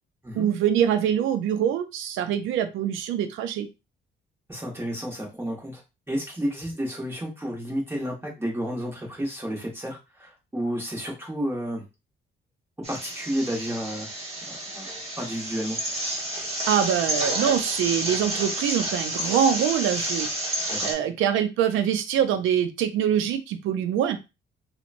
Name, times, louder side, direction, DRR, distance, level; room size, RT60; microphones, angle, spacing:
voice 1, 0.4-3.7 16.7-20.3 20.8-24.2, right 9 dB, 85° right, 10 dB, 0.4 m, -24 dB
voice 2, 4.5-5.8 6.1-11.8 12.9-14.1 14.5-14.9 15.2-15.8 20.7-20.9, equal, 10° right, -2 dB, 1.1 m, -31 dB
sound 1, 12.8-20.9, right 1 dB, 30° right, 1.0 m, -30 dB
2.9 x 2.1 x 2.5 m, 0.26 s
cardioid pair, 90°, 20 cm